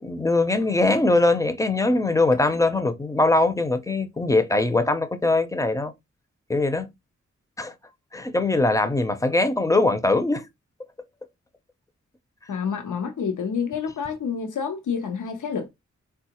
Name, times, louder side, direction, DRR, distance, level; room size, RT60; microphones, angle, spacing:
voice 1, 0.0-5.9 6.5-6.9 7.6-7.7 8.1-10.4, left 2 dB, 10° left, 0.5 m, -21 dB
voice 2, 12.5-15.7, left 6 dB, 85° left, 0.7 m, -28 dB
3.6 x 2.3 x 2.9 m
cardioid pair, 65°, 30 cm